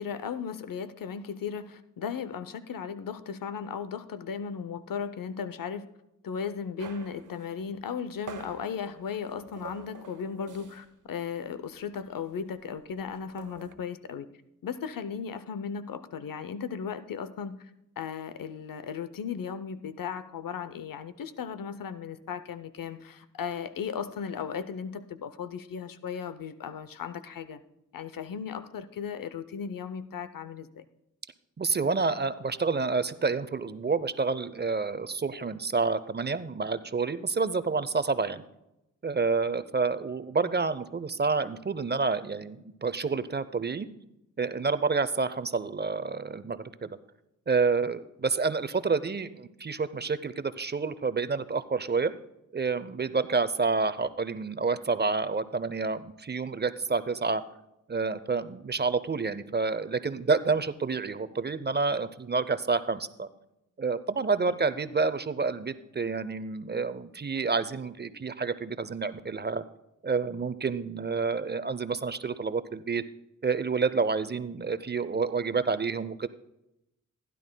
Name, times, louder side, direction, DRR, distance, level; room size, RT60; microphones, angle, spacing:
voice 1, 0.0-5.9 6.2-14.3 14.6-17.7 18.0-27.6 27.9-30.8 64.4-64.6, left 7 dB, 90° left, 13 dB, 0.7 m, -36 dB
sound 1, 6.8-11.0 11.3-11.5 11.8-13.7, right 5 dB, 65° right, 0.8 m, -47 dB
voice 2, 31.6-38.4 39.0-43.9 44.4-46.9 47.5-52.1 52.5-57.4 57.9-63.3 63.8-69.6 70.0-73.0 73.4-76.3, right 4 dB, 30° right, 14 dB, 0.6 m, -29 dB
15.5 x 11.0 x 2.2 m, 0.87 s
cardioid pair, 65°, 33 cm